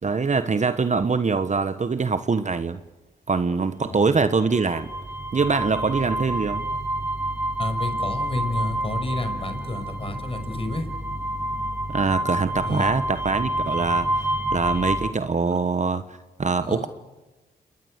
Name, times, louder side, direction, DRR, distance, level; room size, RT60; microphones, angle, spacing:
voice 1, 0.0-2.8 3.3-4.9 5.3-6.6 11.9-16.9, right 4 dB, 40° right, 1.3 m, -24 dB
sound 1, 4.0-15.1, right 1 dB, 10° right, 7.0 m, -28 dB
voice 2, 7.6-10.9 12.6-12.9 16.6-16.9, left 2 dB, 30° left, 5.8 m, -30 dB
28.0 x 21.5 x 6.7 m
supercardioid pair, 50°, 19 cm